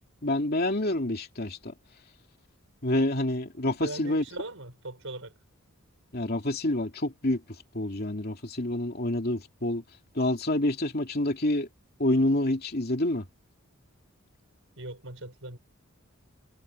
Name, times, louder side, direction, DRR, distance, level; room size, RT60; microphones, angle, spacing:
voice 1, 0.2-1.7 2.8-4.2 6.1-7.4 7.7-9.8 10.1-11.7 12.0-13.2, left 1 dB, 45° left, 2.9 m, -27 dB
voice 2, 3.8-5.3 14.8-15.6, right 2 dB, 65° right, 6.6 m, -39 dB
head